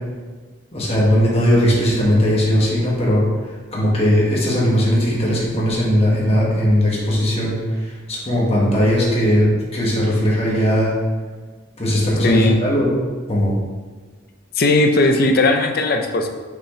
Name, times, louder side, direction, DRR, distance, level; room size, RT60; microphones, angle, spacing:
voice 1, 0.7-3.2 3.7-10.9 11.8-12.9 13.3-13.5, equal, 30° left, -5 dB, 1.6 m, -18 dB
voice 2, 12.2-12.6 14.5-16.3, left 2 dB, 50° left, 4 dB, 0.6 m, -17 dB
6.2 x 5.8 x 3.2 m, 1.4 s
head